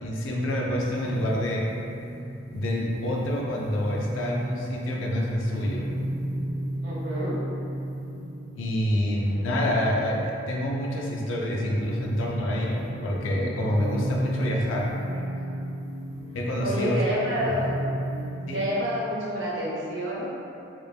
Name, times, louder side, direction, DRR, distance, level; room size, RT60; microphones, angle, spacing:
voice 1, 0.0-1.7 2.5-5.9 8.6-14.9 16.3-17.0 18.5-18.6, left 1 dB, 90° left, -2 dB, 0.4 m, -27 dB
sound 1, 0.8-18.8, right 1 dB, 20° right, 0.4 m, -35 dB
voice 2, 6.8-7.4 15.4-15.5 16.6-17.7 18.5-20.4, equal, 75° right, -7 dB, 0.7 m, -28 dB
2.9 x 2.2 x 2.3 m, 2.7 s
head